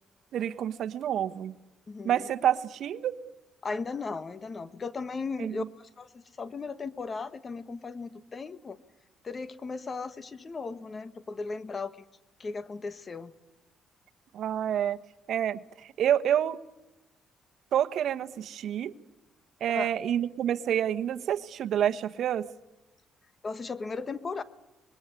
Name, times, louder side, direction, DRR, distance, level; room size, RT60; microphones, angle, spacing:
voice 1, 0.3-1.5 2.0-3.1 5.4-5.5 14.3-15.0 15.3-15.6 16.0-16.6 17.7-18.9 19.6-22.5, right 10 dB, 70° right, 11 dB, 1.2 m, -28 dB
voice 2, 1.9-2.3 3.6-8.8 9.2-12.0 12.4-13.3 19.7-19.9 23.4-24.4, left 4 dB, 35° left, 13 dB, 1.4 m, -36 dB
26.0 x 21.5 x 9.8 m, 0.96 s
cardioid pair, 105°, 0 cm